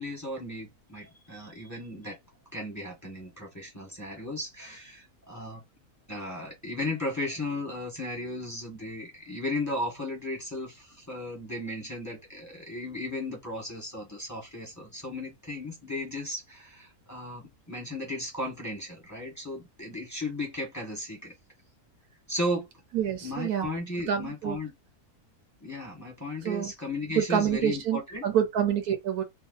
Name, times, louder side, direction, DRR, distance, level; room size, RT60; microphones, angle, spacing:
voice 1, 0.0-2.2 2.5-5.6 6.1-21.3 22.3-22.7 23.2-24.7 25.6-28.2, left 1 dB, 10° left, 1.2 m, -35 dB
voice 2, 22.9-23.7 24.1-24.6 26.4-26.7 27.2-29.2, right 9 dB, 75° right, 1.2 m, -27 dB
2.8 x 2.3 x 3.8 m
omnidirectional pair, 1.6 m